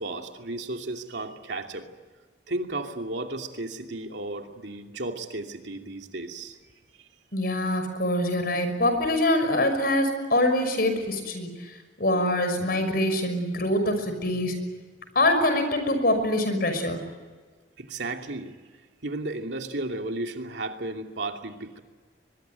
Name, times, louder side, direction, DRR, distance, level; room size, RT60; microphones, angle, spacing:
voice 1, 0.0-1.9 2.5-6.6 17.8-18.6 19.0-21.8, right 2 dB, 80° right, 3 dB, 2.7 m, -34 dB
voice 2, 7.3-14.6 15.1-17.0, left 1 dB, 55° left, 8 dB, 5.9 m, -24 dB
23.0 x 22.5 x 9.2 m, 1.4 s
head